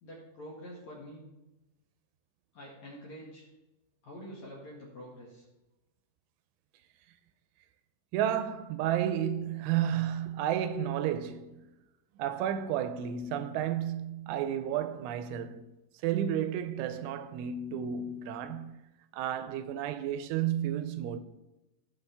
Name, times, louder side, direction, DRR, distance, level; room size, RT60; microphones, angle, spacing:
voice 1, 0.0-1.3 2.5-3.4 4.0-5.4, equal, 55° left, 2.2 m, -46 dB
voice 2, 8.1-11.7 12.2-15.7 16.0-18.8 19.1-21.2, right 10 dB, 85° right, 3.0 m, -32 dB
18.0 x 6.1 x 3.4 m
omnidirectional pair, 5.6 m